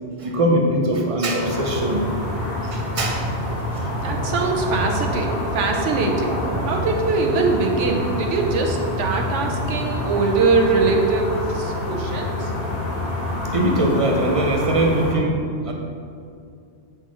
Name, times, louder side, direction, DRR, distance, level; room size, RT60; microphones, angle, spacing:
voice 1, 0.2-2.1 2.6-3.2 3.7-3.9 13.5-15.7, right 1 dB, 35° right, 1 dB, 0.7 m, -21 dB
sound 1, 1.4-15.1, left 1 dB, 55° left, 1.2 m, -26 dB
voice 2, 4.0-6.4 6.7-12.5, right 4 dB, 90° right, 2 dB, 1.1 m, -22 dB
7.9 x 4.2 x 3.7 m, 2.4 s
omnidirectional pair, 1.2 m